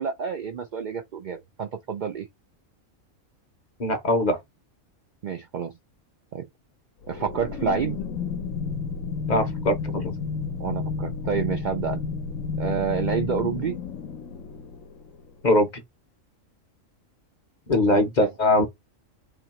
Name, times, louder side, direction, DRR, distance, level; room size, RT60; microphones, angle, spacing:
voice 1, 0.0-2.3 5.2-5.7 6.3-6.5 7.1-8.0 10.6-12.0 12.6-13.8 17.9-18.3, right 7 dB, 80° right, 0.4 m, -29 dB
voice 2, 3.8-4.4 9.3-10.1 15.4-15.7 17.7-18.6, left 1 dB, 40° left, 0.7 m, -21 dB
sound 1, 7.0-15.3, left 5 dB, 80° left, 1.1 m, -31 dB
2.9 x 2.8 x 4.0 m
omnidirectional pair, 1.4 m